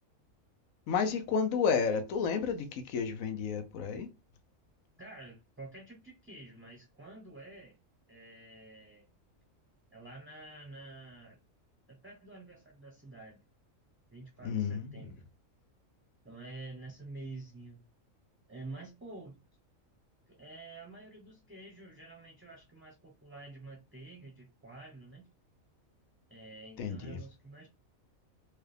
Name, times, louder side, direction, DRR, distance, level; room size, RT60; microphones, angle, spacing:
voice 1, 0.9-4.1 14.4-15.1 26.8-27.2, left 6 dB, 75° left, 1.1 m, -31 dB
voice 2, 5.0-7.8 8.1-9.1 9.9-11.4 11.9-13.4 14.1-15.2 16.2-17.8 18.5-19.4 20.3-25.3 26.3-27.7, right 2 dB, 10° right, 0.7 m, -49 dB
4.6 x 2.3 x 3.3 m
omnidirectional pair, 1.4 m